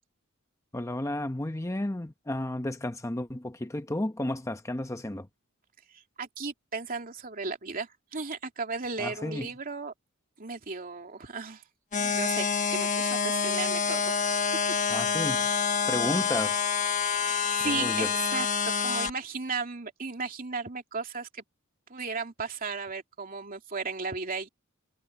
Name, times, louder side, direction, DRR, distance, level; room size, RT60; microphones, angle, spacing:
voice 1, 0.7-5.3 9.0-9.5 14.9-15.5 15.9-16.7 17.6-18.1, left 1 dB, 15° left, 0.8 m, -32 dB
voice 2, 5.9-9.9 10.4-11.6 12.0-14.2 17.1-18.5 18.8-21.4 21.9-24.5, right 4 dB, 45° right, 2.8 m, -35 dB
sound 1, 11.9-19.1, left 6 dB, 35° left, 1.1 m, -27 dB
head